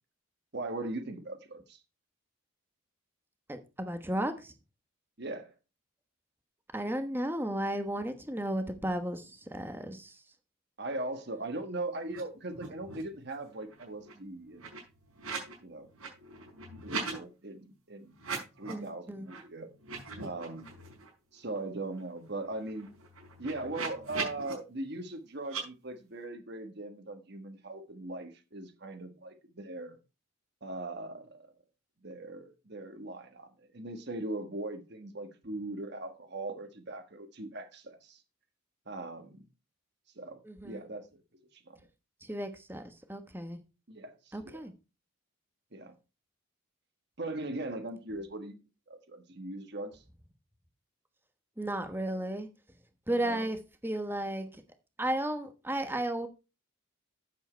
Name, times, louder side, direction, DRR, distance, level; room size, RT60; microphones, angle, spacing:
voice 1, 0.5-1.8 5.2-5.5 10.8-14.8 15.6-15.9 16.8-18.2 18.6-19.7 20.2-20.7 21.3-22.9 23.4-30.0 30.6-31.5 32.0-38.2 38.9-39.4 40.2-40.4 40.6-41.2 41.5-41.8 43.9-44.6 45.7-45.9 47.2-48.6 48.9-50.0 53.2-53.5, right 2 dB, 50° right, 1.4 m, -40 dB
voice 2, 3.5-4.5 6.7-10.2 18.7-19.3 40.4-40.8 42.2-43.6 44.3-44.7 51.6-52.5 53.1-54.6 55.0-56.3, right 1 dB, 10° right, 1.2 m, -34 dB
sound 1, 12.1-12.2 12.5-13.1 13.5-15.6 15.9-17.2 18.1-18.9 19.3-19.4 19.8-21.1 21.5-21.6 21.9-24.5 25.4-25.6, right 4 dB, 85° right, 5.2 m, -41 dB
9.3 x 7.6 x 4.5 m
head